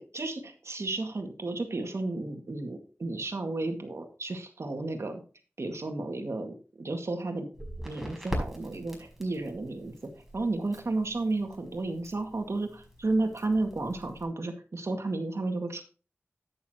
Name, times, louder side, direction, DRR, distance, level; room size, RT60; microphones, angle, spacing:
voice 1, 0.0-5.2 5.6-7.5 7.8-15.8, right 2 dB, 75° right, 5 dB, 2.0 m, -32 dB
Crackle, 7.5-14.2, equal, 5° right, 5.1 m, -42 dB
11.0 x 9.7 x 2.9 m, 0.35 s
wide cardioid pair, 55°, 5 cm